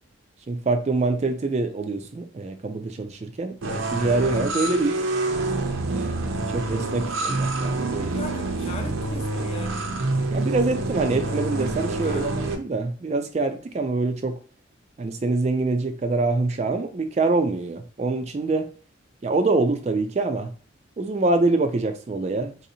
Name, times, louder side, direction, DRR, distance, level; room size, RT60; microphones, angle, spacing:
voice 1, 0.5-5.0 5.9-8.1 10.3-12.3 12.6-14.4 15.0-18.7 19.2-20.5 21.0-22.6, right 3 dB, 35° right, 0.3 m, -25 dB
sound 1, 3.6-12.5, right 2 dB, 80° right, 0.7 m, -27 dB
voice 2, 8.0-10.0 10.9-11.1 12.0-12.5, left 2 dB, 30° left, 0.5 m, -38 dB
4.1 x 2.6 x 2.7 m
head